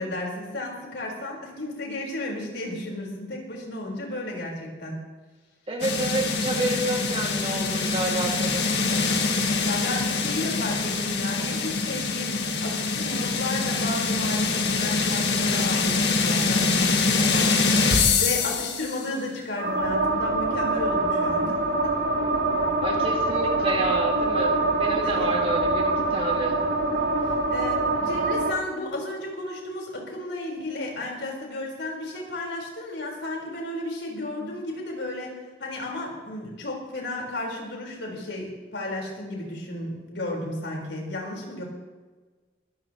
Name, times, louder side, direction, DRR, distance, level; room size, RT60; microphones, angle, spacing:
voice 1, 0.0-5.0 9.6-21.5 21.8-22.0 25.0-25.3 27.3-35.3 35.6-41.6, left 1 dB, 80° left, -1 dB, 4.6 m, -33 dB
voice 2, 5.7-8.7 22.8-26.6, right 2 dB, 30° right, 0 dB, 2.3 m, -29 dB
sound 1, 5.8-19.0, left 4 dB, 65° left, 1.7 m, -24 dB
sound 2, 19.6-28.5, right 2 dB, 90° right, 3.1 m, -24 dB
22.0 x 14.0 x 3.1 m, 1.3 s
head